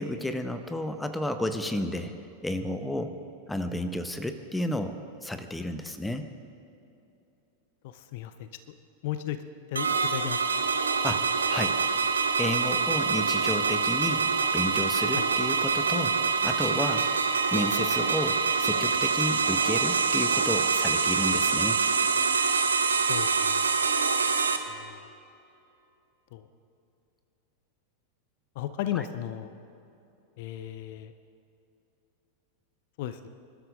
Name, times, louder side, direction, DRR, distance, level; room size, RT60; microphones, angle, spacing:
voice 1, 0.0-2.1 2.4-3.2 3.5-6.3 11.0-11.2 11.5-11.8 12.4-14.2 14.5-16.2 16.4-17.1 17.5-21.8 28.9-29.0, left 1 dB, 5° left, 9 dB, 1.0 m, -32 dB
voice 2, 7.8-8.7 9.0-9.4 9.7-10.4 15.2-15.3 23.1-23.6 24.7-25.1 26.3-26.5 28.6-29.5 30.4-31.1 33.0-33.3, left 11 dB, 50° left, 11 dB, 0.7 m, -35 dB
sound 1, 9.8-24.6, right 5 dB, 75° right, 1.0 m, -25 dB
26.0 x 12.5 x 3.7 m, 2.8 s
figure-of-eight pair, 90°, 0 cm